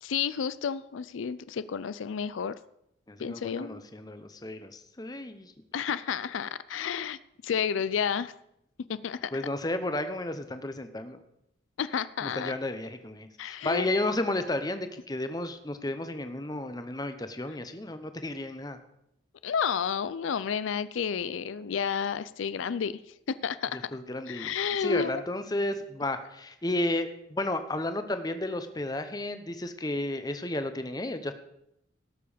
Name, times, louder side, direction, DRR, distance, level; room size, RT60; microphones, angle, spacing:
voice 1, 0.0-2.6 3.2-3.8 5.7-7.2 7.4-8.3 8.9-9.3 11.8-12.5 13.4-13.9 19.4-23.0 23.3-23.9 24.3-25.2, left 7 dB, 90° left, 15 dB, 0.4 m, -31 dB
voice 2, 3.1-5.5 9.3-11.2 12.2-18.8 23.7-24.5 24.8-31.3, left 1 dB, 20° left, 9 dB, 0.8 m, -32 dB
17.5 x 6.8 x 5.0 m, 0.80 s
head